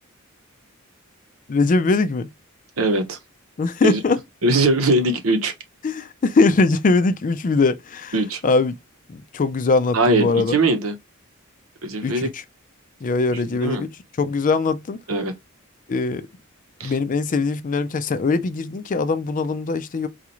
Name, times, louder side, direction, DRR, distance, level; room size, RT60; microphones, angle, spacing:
voice 1, 1.5-2.3 3.6-4.2 5.8-8.1 8.4-8.8 9.1-10.5 12.0-12.4 13.0-13.9 14.2-15.0 15.9-16.3 16.8-20.1, left 3 dB, 40° left, 0.4 m, -21 dB
voice 2, 2.8-3.2 3.8-4.0 4.4-5.5 8.1-8.4 9.9-10.9 11.8-12.3 13.5-13.9 15.1-15.3 16.8-16.9, right 2 dB, 75° right, 0.9 m, -20 dB
4.0 x 2.4 x 3.0 m
head